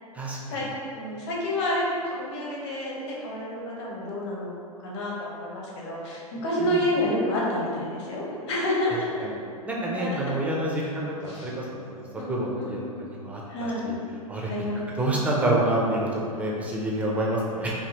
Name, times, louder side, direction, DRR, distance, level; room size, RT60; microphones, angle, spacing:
voice 1, 0.5-4.5 4.8-9.2 9.9-10.4 10.7-11.0 11.2-11.5 12.2-12.9 13.5-13.9 14.4-14.9, left 1 dB, 50° left, -5 dB, 0.9 m, -29 dB
voice 2, 9.7-10.8 11.2-11.5 11.9-12.0 12.3-13.4 13.9-14.0 14.3-14.5 15.0-17.7, right 1 dB, 5° right, -4 dB, 0.4 m, -27 dB
3.4 x 2.3 x 2.8 m, 2.5 s
hypercardioid pair, 110°, 19 cm